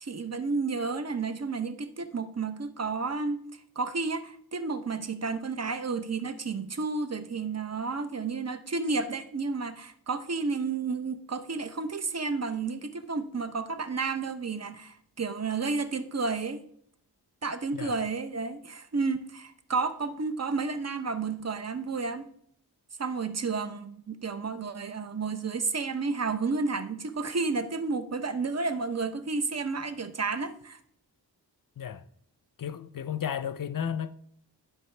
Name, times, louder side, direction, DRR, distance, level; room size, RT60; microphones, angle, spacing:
voice 1, 0.0-3.4 3.8-16.6 17.4-22.3 23.0-30.8, right 4 dB, 40° right, 0.7 m, -31 dB
voice 2, 32.6-34.1, left 8 dB, 55° left, 0.5 m, -33 dB
11.0 x 4.8 x 3.2 m
cardioid pair, 50°, 41 cm